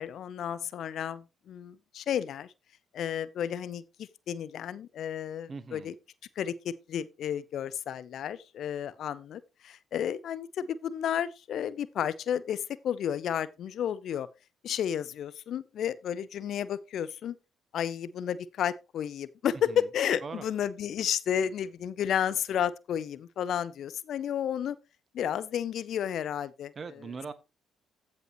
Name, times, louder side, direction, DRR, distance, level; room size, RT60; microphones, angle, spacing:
voice 1, 0.0-2.5 2.9-3.8 4.3-5.9 6.4-14.3 14.6-17.4 17.7-24.8 25.1-26.7, left 9 dB, 60° left, 0.6 m, -32 dB
voice 2, 5.5-5.9 19.7-19.9 20.2-20.4 26.7-27.3, right 5 dB, 40° right, 1.2 m, -40 dB
15.0 x 5.3 x 2.9 m
hypercardioid pair, 45°, 0 cm